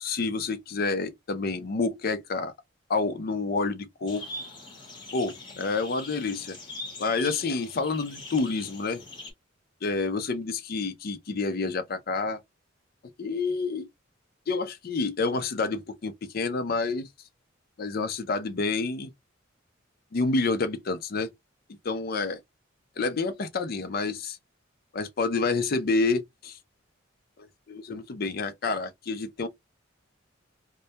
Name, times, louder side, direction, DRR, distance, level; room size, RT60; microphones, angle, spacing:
voice 1, 0.0-2.5 2.9-4.2 5.1-6.6 7.0-9.0 9.8-12.4 13.2-13.9 14.5-17.1 17.8-19.1 20.1-21.3 21.8-22.4 23.0-24.4 24.9-26.6 27.4-29.5, left 3 dB, 50° left, 0.5 m, -28 dB
sound 1, 4.1-9.3, left 2 dB, 25° left, 1.1 m, -42 dB
2.2 x 2.1 x 2.7 m
head